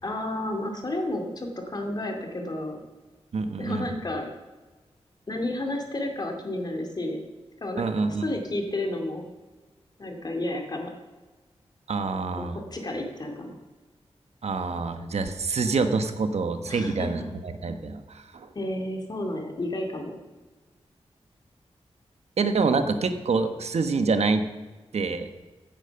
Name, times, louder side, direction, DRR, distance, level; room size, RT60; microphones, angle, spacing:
voice 1, 0.0-2.8 3.6-4.3 5.3-7.2 7.6-9.2 10.0-10.9 12.4-13.6 16.6-17.3 18.5-20.1, left 1 dB, 40° left, 3 dB, 2.4 m, -31 dB
voice 2, 3.3-3.9 7.8-8.3 11.9-12.6 14.4-18.5 22.4-24.4 24.9-25.3, right 4 dB, 75° right, 8 dB, 1.3 m, -26 dB
15.5 x 9.0 x 5.9 m, 1.3 s
wide cardioid pair, 125°, 11 cm